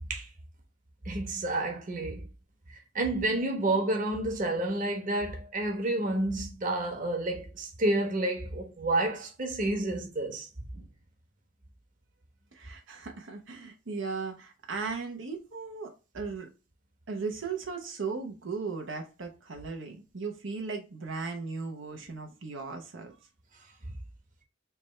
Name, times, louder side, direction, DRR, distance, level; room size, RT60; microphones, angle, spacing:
voice 1, 1.0-2.2 2.9-10.5, right 2 dB, 45° right, 1.1 m, -30 dB
voice 2, 12.5-16.5 17.1-23.2, right 4 dB, 80° right, 0.8 m, -37 dB
3.4 x 3.1 x 4.2 m
head